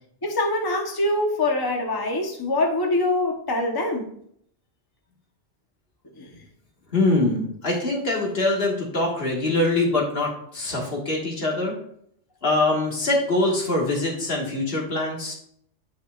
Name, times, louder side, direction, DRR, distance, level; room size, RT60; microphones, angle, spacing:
voice 1, 0.2-4.1 6.1-6.3, left 2 dB, 20° left, 2 dB, 0.9 m, -24 dB
voice 2, 6.9-11.8 12.4-15.3, left 2 dB, 55° left, -1 dB, 1.9 m, -23 dB
10.5 x 5.6 x 2.4 m, 0.67 s
omnidirectional pair, 1.2 m